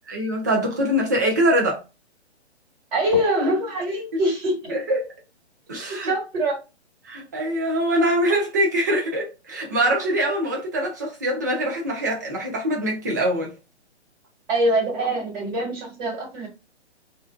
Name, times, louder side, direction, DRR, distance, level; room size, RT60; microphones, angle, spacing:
voice 1, 0.1-1.8 3.9-4.0 4.7-5.0 5.7-6.1 7.0-13.5, right 1 dB, 15° right, 0.3 m, -23 dB
voice 2, 2.9-4.8 6.0-6.6 14.5-16.5, right 1 dB, 40° right, 1.5 m, -24 dB
2.5 x 2.2 x 2.3 m
hypercardioid pair, 135°, 34 cm